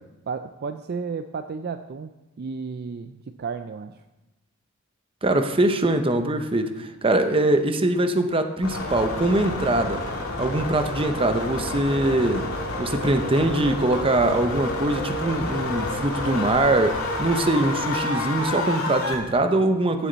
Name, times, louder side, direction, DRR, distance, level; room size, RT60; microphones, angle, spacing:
voice 1, 0.3-4.0, right 5 dB, 45° right, 9 dB, 0.4 m, -33 dB
voice 2, 5.2-10.0 10.4-12.5 12.8-20.1, right 1 dB, 25° right, 7 dB, 0.8 m, -22 dB
sound 1, 8.6-19.1, left 2 dB, 75° left, 2.3 m, -29 dB
16.0 x 7.0 x 4.1 m, 1.1 s
head